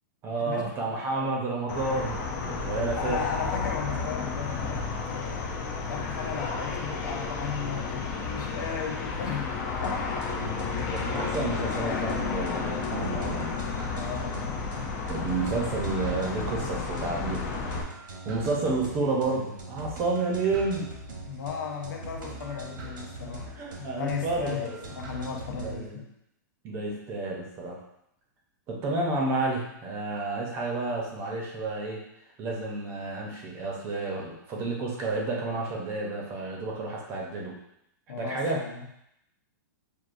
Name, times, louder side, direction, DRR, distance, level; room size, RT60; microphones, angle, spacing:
voice 1, 0.2-3.3 10.3-10.6 10.9-13.5 15.1-17.4 18.2-20.9 22.2-22.4 23.2-24.8 25.4-26.0 26.6-27.8 28.7-32.0 32.4-37.6 38.2-38.6, right 3 dB, 20° right, -1 dB, 0.7 m, -31 dB
sound 1, 1.7-17.8, left 4 dB, 25° left, 0.4 m, -32 dB
voice 2, 3.0-5.5 5.9-9.5 9.8-10.2 13.9-14.5 21.3-23.5 23.9-26.0 38.1-39.0, left 6 dB, 75° left, 1 dB, 0.9 m, -36 dB
sound 2, 9.8-25.9, right 2 dB, 80° right, 1.2 m, -42 dB
6.2 x 2.5 x 2.5 m, 0.80 s
supercardioid pair, 170°, 10 cm